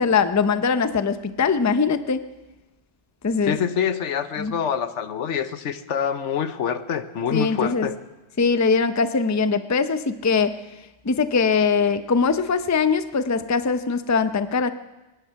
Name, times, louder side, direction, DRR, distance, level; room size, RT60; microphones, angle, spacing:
voice 1, 0.0-2.3 3.2-3.6 4.4-4.5 7.3-7.9 8.4-10.6 11.0-14.7, left 5 dB, 20° left, 11 dB, 0.5 m, -21 dB
voice 2, 3.4-7.9, left 8 dB, 85° left, 11 dB, 1.2 m, -26 dB
23.5 x 10.5 x 5.8 m, 1.1 s
omnidirectional pair, 1.2 m